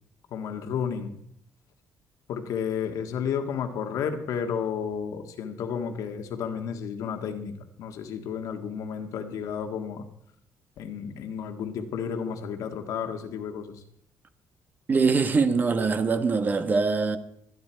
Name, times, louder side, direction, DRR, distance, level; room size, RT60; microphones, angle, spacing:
voice 1, 0.3-1.1 2.3-10.1 10.8-13.8, left 7 dB, 75° left, 1.7 m, -32 dB
voice 2, 14.9-17.2, right 4 dB, 30° right, 1.2 m, -23 dB
24.0 x 9.5 x 4.5 m
cardioid pair, 125°, 6 cm